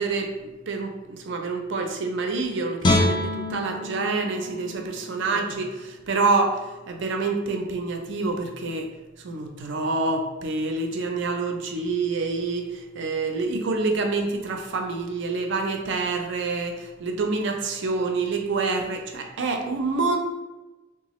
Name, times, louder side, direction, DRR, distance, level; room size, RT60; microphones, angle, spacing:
voice 1, 0.0-8.9 9.2-20.2, right 3 dB, 65° right, 4 dB, 0.5 m, -27 dB
Guitar, 2.8-6.0 6.4-6.5, left 1 dB, 25° left, 0.3 m, -27 dB
3.8 x 2.3 x 3.0 m, 1.1 s
head